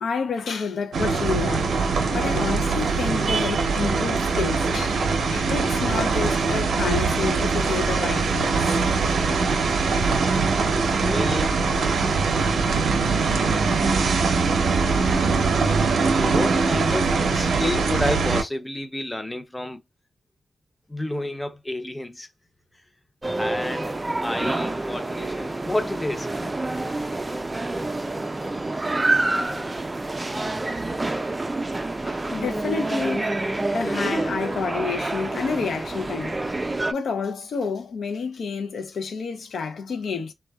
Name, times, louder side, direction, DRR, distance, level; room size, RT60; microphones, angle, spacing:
voice 1, 0.0-5.1 5.3-8.8 32.1-33.3 33.7-36.4 36.9-40.3, left 5 dB, 80° left, 0.5 m, -29 dB
sound 1, 0.9-18.4, right 4 dB, 80° right, 0.5 m, -22 dB
voice 2, 11.0-11.6 16.2-19.8 20.9-22.3 23.4-26.5, left 1 dB, 20° left, 0.6 m, -30 dB
sound 2, 23.2-36.9, right 2 dB, 25° right, 0.4 m, -27 dB
2.6 x 2.2 x 2.2 m
cardioid pair, 50°, 0 cm